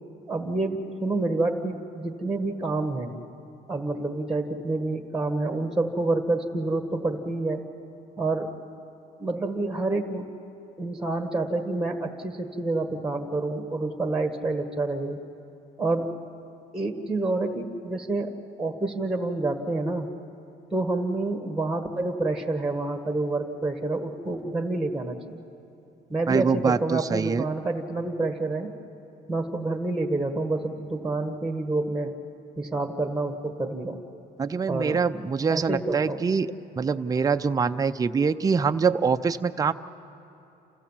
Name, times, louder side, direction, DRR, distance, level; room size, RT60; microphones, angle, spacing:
voice 1, 0.3-3.2 3.7-7.6 8.2-8.5 9.2-10.2 10.8-15.2 15.8-16.1 16.7-18.3 18.6-20.1 20.7-25.4 26.1-28.7 29.3-32.1 32.6-34.0 34.7-35.0 35.5-36.2, right 2 dB, 5° right, 5 dB, 1.6 m, -28 dB
voice 2, 26.3-27.4 34.4-36.5 36.8-39.7, right 5 dB, 20° right, 8 dB, 0.6 m, -24 dB
29.0 x 15.0 x 7.4 m, 2.9 s
cardioid pair, 110°, 17 cm